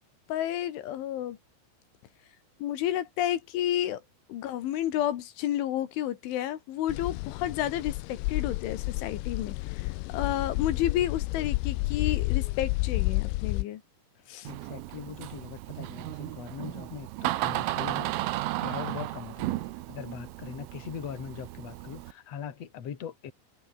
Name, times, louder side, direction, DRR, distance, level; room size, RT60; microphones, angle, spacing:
voice 1, 0.3-1.4 2.6-4.0 4.3-13.8 14.3-14.5, left 12 dB, 75° left, 4.1 m, -31 dB
sound 1, 6.9-13.6, left 24 dB, 90° left, 2.5 m, -30 dB
voice 2, 14.4-19.5 19.9-23.3, left 8 dB, 40° left, 2.8 m, -41 dB
Door, 14.5-22.1, right 16 dB, 85° right, 3.8 m, -34 dB
omnidirectional pair, 5.7 m